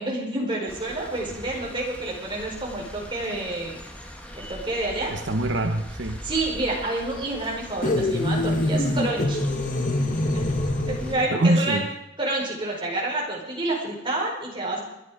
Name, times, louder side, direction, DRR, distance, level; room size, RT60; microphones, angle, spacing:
voice 1, 0.0-3.8 4.4-5.1 6.2-9.5 10.3-10.4 10.9-11.8 12.2-14.8, right 2 dB, 25° right, -2 dB, 4.8 m, -28 dB
sound 1, 0.7-11.1, equal, 5° left, 1.7 m, -41 dB
voice 2, 5.1-6.2 11.3-11.9, right 1 dB, 70° right, 6 dB, 1.0 m, -24 dB
sound 2, 7.8-11.3, left 1 dB, 40° left, 1.3 m, -25 dB
22.0 x 11.0 x 5.0 m, 0.90 s
head